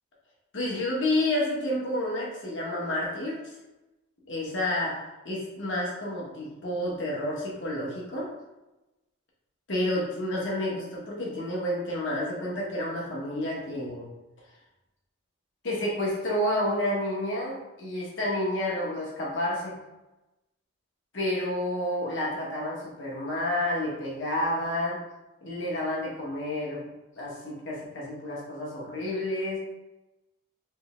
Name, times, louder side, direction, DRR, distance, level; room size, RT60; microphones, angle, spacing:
voice 1, 0.5-3.4 4.3-5.0 5.2-8.3 9.7-14.1 15.6-19.8 21.1-25.0 25.4-26.9 27.2-29.6, left 1 dB, 60° left, -4 dB, 1.1 m, -30 dB
3.5 x 3.3 x 3.0 m, 1.0 s
head